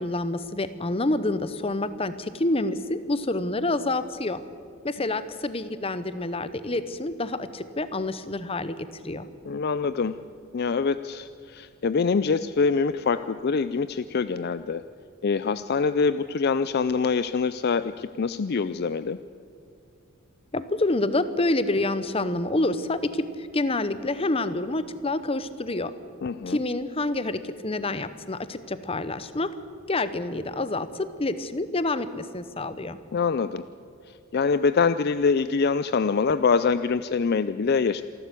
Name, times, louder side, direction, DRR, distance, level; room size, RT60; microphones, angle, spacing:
voice 1, 0.0-4.4 4.8-8.7 9.0-9.3 20.5-23.3 23.5-25.9 26.5-29.5 29.9-33.0, left 2 dB, 25° left, 13 dB, 0.8 m, -27 dB
voice 2, 9.5-10.2 10.5-14.8 15.2-19.2 26.2-26.6 33.1-33.7 34.3-38.0, left 5 dB, 50° left, 13 dB, 0.4 m, -24 dB
27.0 x 12.0 x 8.2 m, 2.4 s
head